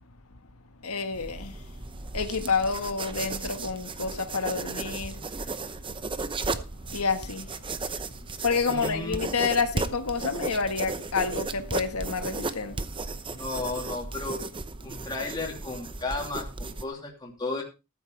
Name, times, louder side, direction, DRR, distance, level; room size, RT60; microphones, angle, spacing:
voice 1, 0.8-1.6 2.1-5.2 6.9-7.5 8.4-12.8, left 5 dB, 80° left, 1.4 m, -29 dB
sound 1, 1.1-16.8, right 3 dB, 25° right, 0.8 m, -35 dB
voice 2, 8.7-9.2 13.3-14.4 14.8-17.6, left 3 dB, 20° left, 2.9 m, -34 dB
14.5 x 12.0 x 3.3 m
head